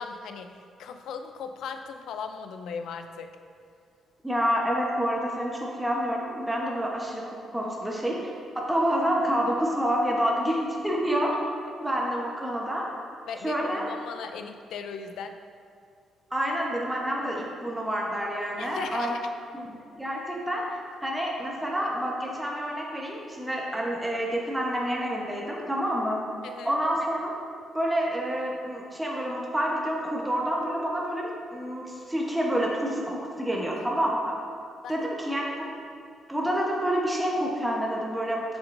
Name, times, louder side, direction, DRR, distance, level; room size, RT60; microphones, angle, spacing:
voice 1, 0.0-3.3 13.3-15.4 18.6-19.2 26.4-26.8 34.8-35.1, left 6 dB, 80° left, 7 dB, 0.4 m, -38 dB
voice 2, 4.2-11.4 11.8-12.9 13.4-13.8 16.3-19.2 19.5-20.6 21.0-26.2 26.6-27.3 27.7-34.3 34.9-35.7 36.3-38.4, equal, 5° right, -3 dB, 0.9 m, -28 dB
7.2 x 6.0 x 2.6 m, 2.3 s
cardioid pair, 90°, 0 cm